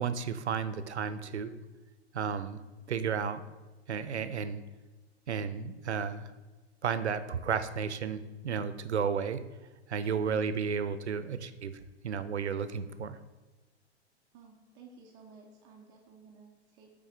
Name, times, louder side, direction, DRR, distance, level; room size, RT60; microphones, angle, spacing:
voice 1, 0.0-1.6 2.1-2.6 2.9-3.4 3.9-4.6 5.3-6.3 6.8-9.4 9.9-13.2, right 6 dB, 75° right, 12 dB, 0.5 m, -33 dB
voice 2, 10.2-10.5 14.3-16.9, right 5 dB, 10° right, 0 dB, 0.3 m, -54 dB
8.9 x 3.5 x 3.4 m, 1.2 s
figure-of-eight pair, 100°, 34 cm